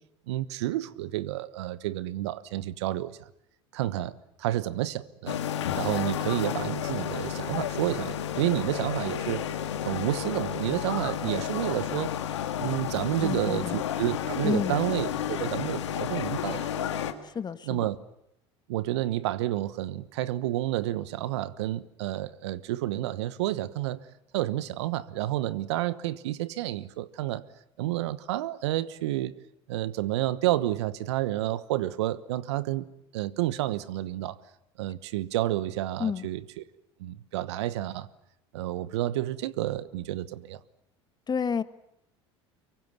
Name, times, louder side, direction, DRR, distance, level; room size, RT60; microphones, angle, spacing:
voice 1, 0.3-3.2 3.7-5.4 5.7-9.4 9.8-12.1 12.6-16.7 17.7-18.0 18.7-24.0 24.3-27.4 27.8-29.3 29.7-32.9 33.1-34.4 34.8-36.6 37.0-38.1 38.5-40.6, right 15 dB, 75° right, 1.1 m, -30 dB
sound 1, 5.3-17.1, left 9 dB, 85° left, 2.0 m, -31 dB
voice 2, 13.2-13.8 14.4-14.9 17.2-17.9 36.0-36.3 41.3-41.6, left 6 dB, 30° left, 1.5 m, -30 dB
24.5 x 23.5 x 9.5 m
hypercardioid pair, 75°, 15 cm